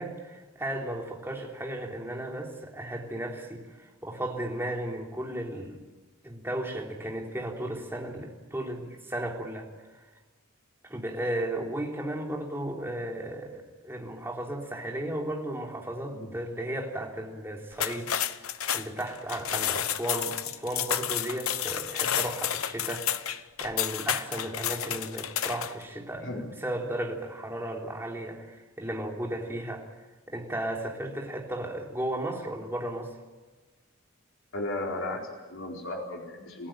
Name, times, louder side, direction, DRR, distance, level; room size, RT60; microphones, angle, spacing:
voice 1, 0.0-5.8 6.2-9.7 10.8-23.3 23.6-29.9 30.3-33.1, right 1 dB, 10° right, 0 dB, 3.4 m, -35 dB
sound 1, 17.7-25.8, left 10 dB, 80° left, 1.0 m, -31 dB
voice 2, 34.5-36.7, left 2 dB, 65° left, 0 dB, 4.4 m, -35 dB
28.5 x 17.0 x 9.2 m, 1.3 s
head